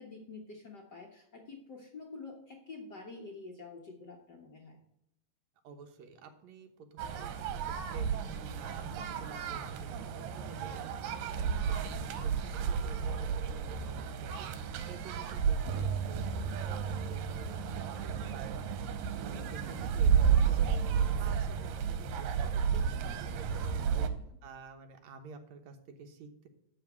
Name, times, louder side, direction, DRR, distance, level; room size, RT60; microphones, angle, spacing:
voice 1, 0.0-4.8 19.7-19.8, left 3 dB, 75° left, -1 dB, 0.9 m, -48 dB
voice 2, 5.6-8.2 8.6-18.6 18.9-24.1 24.4-26.5, right 4 dB, 65° right, 6 dB, 2.1 m, -51 dB
sound 1, 7.0-24.1, right 7 dB, 80° right, 2.5 m, -32 dB
12.0 x 4.1 x 8.1 m, 0.83 s
omnidirectional pair, 3.9 m